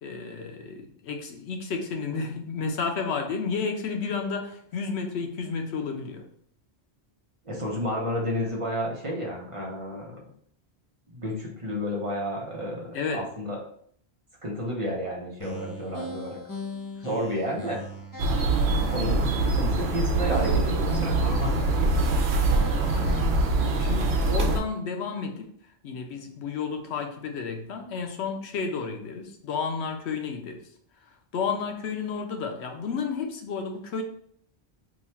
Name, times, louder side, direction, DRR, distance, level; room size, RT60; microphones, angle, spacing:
voice 1, 0.0-6.3 12.9-13.3 22.8-23.3 23.8-25.5 25.8-30.7 31.3-34.0, left 5 dB, 90° left, 4 dB, 0.9 m, -32 dB
voice 2, 7.4-10.3 11.1-13.6 14.4-16.4 17.0-17.8 18.9-21.9, equal, 35° right, -2 dB, 0.7 m, -31 dB
sound 1, 15.4-24.1, left 2 dB, 25° left, 0.5 m, -39 dB
sound 2, 18.2-24.6, right 2 dB, 75° right, 0.8 m, -24 dB
2.9 x 2.3 x 4.2 m, 0.63 s
omnidirectional pair, 1.1 m